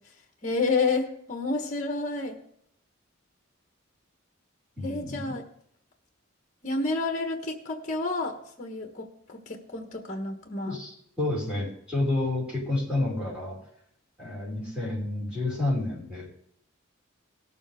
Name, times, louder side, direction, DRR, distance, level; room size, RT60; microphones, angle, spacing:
voice 1, 0.4-2.4 4.8-5.4 6.6-10.8, left 3 dB, 35° left, 4 dB, 1.2 m, -30 dB
voice 2, 4.8-5.4 10.6-13.6 14.2-16.3, left 2 dB, 5° right, -6 dB, 5.3 m, -30 dB
18.5 x 7.4 x 3.5 m, 0.69 s
head